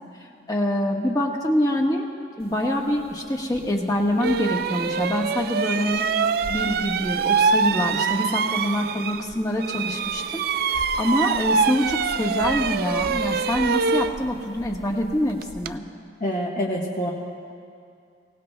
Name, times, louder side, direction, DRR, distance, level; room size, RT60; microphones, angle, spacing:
voice 1, 0.5-2.1 2.4-6.1 6.5-15.8, left 1 dB, 20° left, -1 dB, 1.3 m, -25 dB
sound 1, 3.5-3.7 4.2-9.3 9.6-15.8, right 5 dB, 55° right, 0.3 m, -25 dB
voice 2, 16.2-17.1, equal, 45° left, -4 dB, 1.2 m, -26 dB
24.5 x 17.5 x 2.2 m, 2.4 s
head